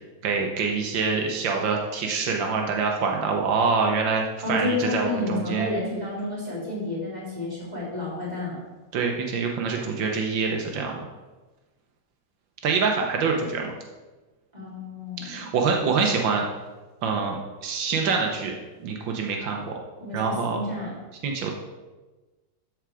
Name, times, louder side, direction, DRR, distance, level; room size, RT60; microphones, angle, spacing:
voice 1, 0.2-5.7 8.9-11.0 12.6-13.7 15.2-16.4 17.0-18.5 18.8-19.8 20.1-20.6 21.2-21.5, right 5 dB, 85° right, 1 dB, 1.7 m, -25 dB
voice 2, 4.4-8.6 14.5-15.5 20.0-21.0, left 2 dB, 20° right, -7 dB, 3.4 m, -30 dB
13.0 x 4.7 x 4.9 m, 1.2 s
omnidirectional pair, 2.0 m